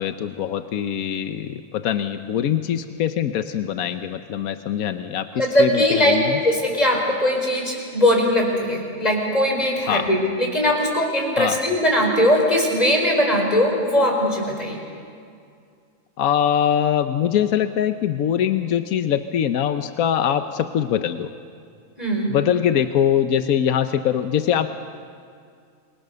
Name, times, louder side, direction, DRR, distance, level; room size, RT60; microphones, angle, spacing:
voice 1, 0.0-6.4 9.9-10.1 11.4-11.6 16.2-21.3 22.3-24.7, left 9 dB, 85° left, 9 dB, 1.3 m, -22 dB
voice 2, 5.3-14.8 22.0-22.3, left 1 dB, 25° left, 1 dB, 4.9 m, -20 dB
29.0 x 23.5 x 6.8 m, 2.3 s
omnidirectional pair, 1.5 m